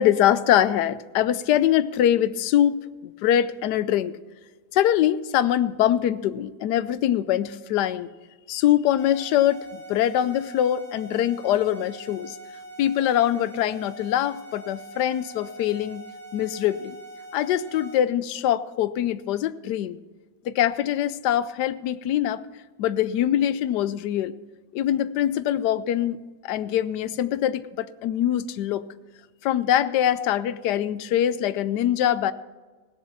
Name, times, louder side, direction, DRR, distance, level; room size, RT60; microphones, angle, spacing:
voice 1, 0.0-4.1 4.7-8.1 8.5-12.4 12.8-16.0 16.3-17.0 17.3-20.0 20.4-22.5 22.8-24.4 24.7-28.8 29.4-32.3, left 11 dB, 80° left, 16 dB, 1.2 m, -23 dB
sound 1, 9.0-18.0, right 2 dB, 15° left, 2.4 m, -43 dB
16.5 x 7.5 x 7.1 m, 1.3 s
omnidirectional pair, 1.8 m